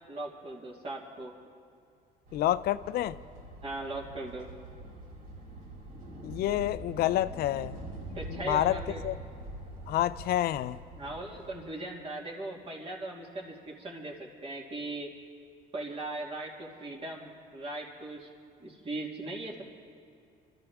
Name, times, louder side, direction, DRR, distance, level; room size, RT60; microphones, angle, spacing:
voice 1, 0.1-1.3 3.6-4.5 6.2-6.3 8.1-9.0 11.0-15.1 15.7-18.3 18.6-19.6, right 2 dB, 35° right, -1 dB, 2.7 m, -39 dB
voice 2, 2.3-3.2 6.2-7.8 8.3-9.1 9.9-10.8, left 13 dB, 65° left, 16 dB, 0.5 m, -28 dB
sound 1, 2.3-11.7, right 1 dB, 60° right, 4.0 m, -44 dB
26.5 x 13.5 x 3.6 m, 2.4 s
cardioid pair, 110°, 17 cm